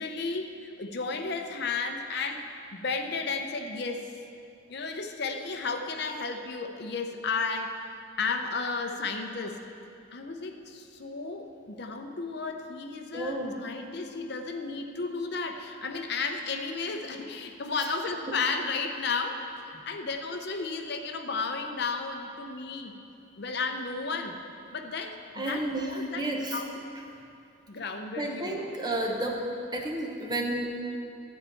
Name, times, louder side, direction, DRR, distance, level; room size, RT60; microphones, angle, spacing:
voice 1, 0.0-2.5 2.7-4.2 4.7-9.7 10.1-22.9 23.4-24.4 24.7-26.8 27.7-28.7, left 4 dB, 55° left, 5 dB, 0.6 m, -33 dB
voice 2, 13.1-13.5 25.4-26.6 28.2-29.4 29.7-30.8, right 1 dB, 20° right, 0 dB, 0.9 m, -31 dB
13.0 x 4.4 x 8.4 m, 2.6 s
head